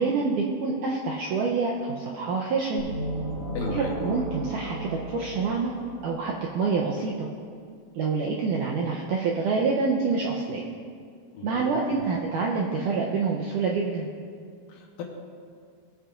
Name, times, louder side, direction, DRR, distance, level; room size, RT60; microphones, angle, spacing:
voice 1, 0.0-2.8 3.7-5.7 6.0-7.3 7.9-10.6 11.4-14.1, right 4 dB, 85° right, -2 dB, 1.8 m, -27 dB
sound 1, 2.8-6.5, right 1 dB, 40° right, 2.5 m, -34 dB
voice 2, 3.5-4.0 11.3-12.1 14.7-15.0, left 4 dB, 70° left, 0 dB, 2.4 m, -36 dB
20.0 x 8.4 x 2.5 m, 2.1 s
omnidirectional pair, 4.5 m